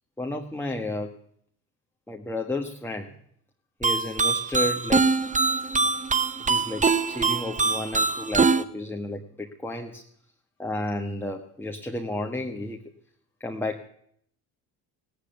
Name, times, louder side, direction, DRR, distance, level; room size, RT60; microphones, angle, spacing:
voice 1, 0.2-1.1 2.1-3.2 3.8-5.0 6.4-10.0 10.6-12.8 13.4-13.9, left 1 dB, 5° left, 2 dB, 1.4 m, -32 dB
sound 1, 3.8-8.6, right 4 dB, 15° right, 0.8 m, -23 dB
16.5 x 8.5 x 9.2 m, 0.68 s
hypercardioid pair, 60°, 46 cm